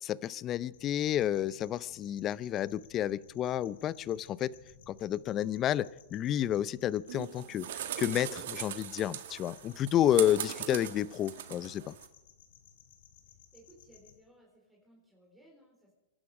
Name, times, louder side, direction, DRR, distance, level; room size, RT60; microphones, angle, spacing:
voice 1, 0.0-4.5 4.9-7.7 8.0-11.9, left 11 dB, 30° left, 20 dB, 0.6 m, -30 dB
sound 1, 0.7-14.2, left 8 dB, 70° left, 2.9 m, -59 dB
sound 2, 7.1-12.1, right 11 dB, 65° right, 1.5 m, -40 dB
voice 2, 13.5-15.9, right 1 dB, 10° right, -1 dB, 4.2 m, -60 dB
26.0 x 11.5 x 4.9 m, 1.0 s
hypercardioid pair, 125°, 0 cm